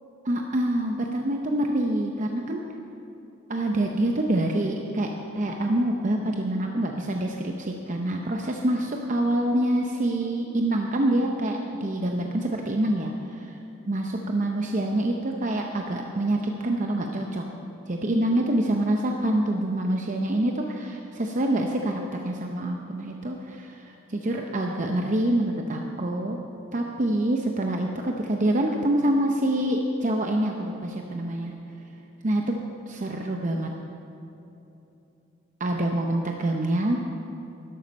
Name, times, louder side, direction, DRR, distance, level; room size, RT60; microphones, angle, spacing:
voice 1, 0.3-2.6 3.5-5.1 5.3-13.6 13.8-17.4 17.9-26.4 26.7-31.5 32.2-33.7 35.6-37.2, right 1 dB, 40° right, 2 dB, 0.7 m, -26 dB
12.5 x 12.0 x 5.3 m, 2.9 s
head